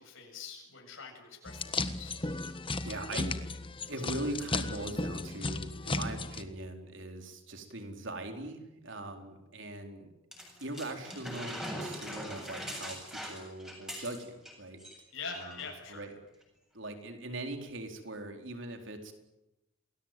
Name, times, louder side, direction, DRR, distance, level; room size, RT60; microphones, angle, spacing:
voice 1, 0.0-2.1 15.1-16.0, left 5 dB, 65° left, 1 dB, 7.5 m, -44 dB
sound 1, 1.5-6.4, left 3 dB, 25° left, 1.4 m, -35 dB
voice 2, 2.8-3.4 3.9-10.1 10.6-14.8 15.3-16.1 16.7-19.1, right 1 dB, 60° right, 5 dB, 4.4 m, -41 dB
sound 2, 10.3-14.5 14.8-15.0 15.3-15.7 16.4-16.5, equal, 5° right, 7.7 m, -41 dB
29.0 x 21.0 x 9.2 m, 0.93 s
head